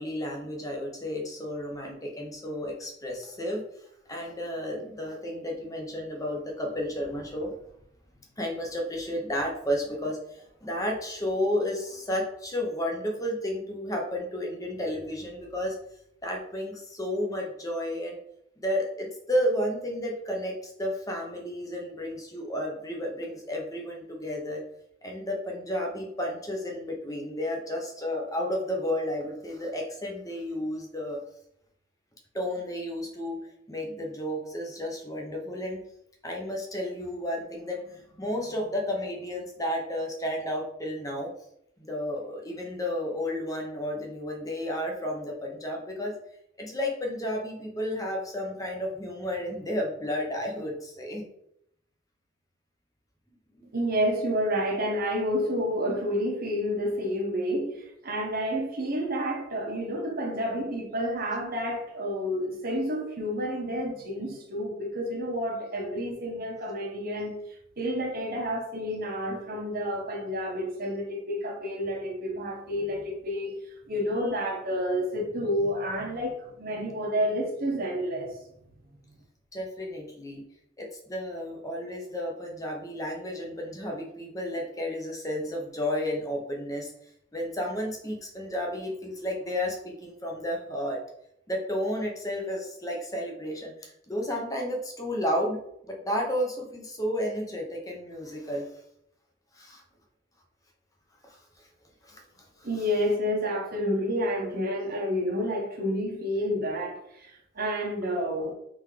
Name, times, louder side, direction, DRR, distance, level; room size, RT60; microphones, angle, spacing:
voice 1, 0.0-3.6 4.1-7.5 8.4-15.7 16.2-18.2 18.6-24.6 25.0-31.2 32.3-33.4 33.7-35.8 36.2-41.3 41.8-46.1 46.6-51.2 53.6-53.7 79.5-80.4 80.8-86.9 87.3-91.0 91.5-95.6 95.8-98.7 99.5-99.8 101.2-101.7 102.0-102.2 102.6-102.7, equal, 15° left, 0 dB, 0.8 m, -32 dB
voice 2, 53.7-67.3 67.8-73.5 73.9-78.4 102.6-108.5, equal, 50° right, 1 dB, 1.0 m, -29 dB
3.8 x 3.5 x 3.2 m, 0.75 s
head